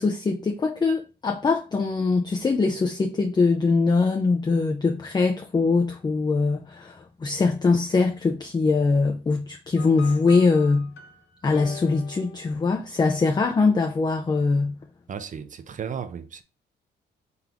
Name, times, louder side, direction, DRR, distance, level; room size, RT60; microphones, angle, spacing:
voice 1, 0.0-10.9 11.4-14.8, left 4 dB, 20° left, 0.5 m, -22 dB
sound 1, 9.8-13.2, left 11 dB, 80° left, 0.7 m, -43 dB
voice 2, 15.1-16.4, right 7 dB, 40° right, 0.5 m, -34 dB
4.0 x 3.6 x 2.9 m
cardioid pair, 90°, 20 cm